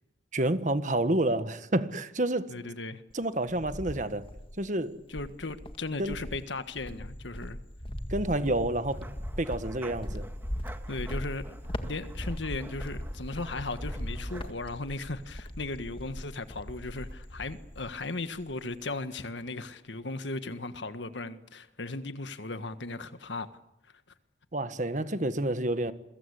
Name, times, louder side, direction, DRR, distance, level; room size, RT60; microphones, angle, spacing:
voice 1, 0.3-2.5 3.1-4.2 4.6-5.0 6.0-6.2 8.1-9.1 9.4-10.3 24.5-25.9, right 1 dB, 45° right, 1.5 m, -29 dB
voice 2, 2.5-3.0 5.1-7.6 10.9-23.5, left 2 dB, 80° left, 1.6 m, -37 dB
Cricket, 3.1-4.6 5.1-18.1 18.4-18.9, equal, 30° left, 1.8 m, -39 dB
sound 1, 8.9-14.5, right 1 dB, 10° right, 1.6 m, -50 dB
28.0 x 23.0 x 8.5 m
head